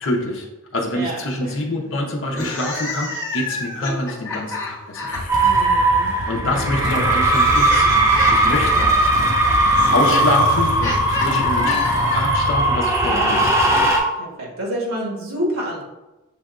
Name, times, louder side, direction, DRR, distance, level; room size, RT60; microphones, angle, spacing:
voice 1, 0.0-0.5 0.7-5.1 6.2-8.0 8.3-8.9 9.9-11.8 12.1-13.6, left 1 dB, 65° left, -1 dB, 0.7 m, -25 dB
voice 2, 0.9-1.9 5.4-6.1 6.4-6.9 8.7-8.8 13.0-13.3 14.2-15.8, equal, 90° right, -2 dB, 1.4 m, -29 dB
sound 1, 2.2-5.5 6.5-12.4, left 3 dB, 15° left, 1.3 m, -30 dB
Motorcycle / Engine starting, 5.1-13.9, left 2 dB, 35° left, 0.3 m, -28 dB
sound 2, 5.3-14.0, right 2 dB, 15° right, 0.6 m, -18 dB
6.7 x 3.3 x 2.4 m, 1.0 s
head